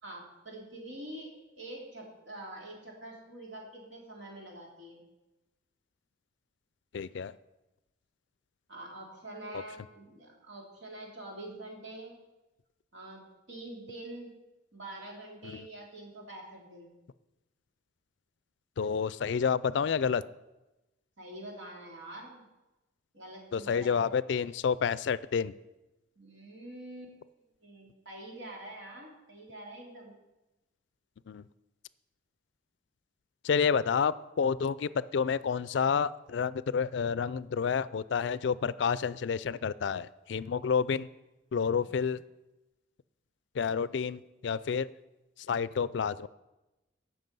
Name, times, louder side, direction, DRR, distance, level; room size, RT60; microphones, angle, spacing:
voice 1, 0.0-5.0 8.7-12.2 12.9-14.3 14.7-16.9 21.2-22.4 23.1-24.2 26.2-27.1 27.6-30.2 41.7-42.1, right 1 dB, 75° right, -2 dB, 3.1 m, -46 dB
voice 2, 6.9-7.3 15.4-15.6 18.8-20.2 23.5-25.5 31.3-31.4 33.4-41.1 41.5-42.2 43.6-44.9 45.5-46.3, left 6 dB, 65° left, 17 dB, 0.4 m, -29 dB
15.5 x 6.1 x 5.4 m, 1.0 s
head